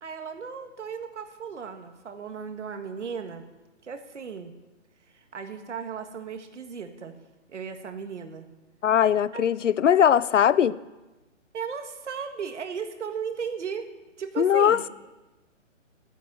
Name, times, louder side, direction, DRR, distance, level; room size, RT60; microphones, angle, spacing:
voice 1, 0.0-3.4 3.8-4.5 5.1-7.1 7.5-8.5 9.3-9.5 11.5-13.9 14.2-14.8, right 6 dB, 65° right, 6 dB, 1.9 m, -36 dB
voice 2, 8.8-10.8 14.4-14.9, left 9 dB, 70° left, 19 dB, 0.7 m, -20 dB
14.0 x 10.5 x 6.8 m, 1.1 s
hypercardioid pair, 165°, 38 cm